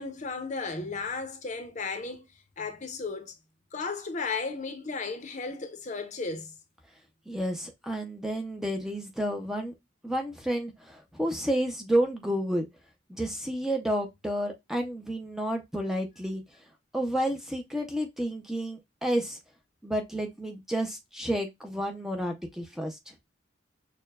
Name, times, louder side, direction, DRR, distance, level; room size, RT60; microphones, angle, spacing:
voice 1, 0.0-2.3 2.6-3.3 3.7-6.5, left 4 dB, 40° left, 0.6 m, -34 dB
voice 2, 7.3-9.7 10.0-12.6 13.2-16.4 16.9-19.4 19.8-23.1, equal, ahead, 0.5 m, -30 dB
6.4 x 2.2 x 2.2 m
head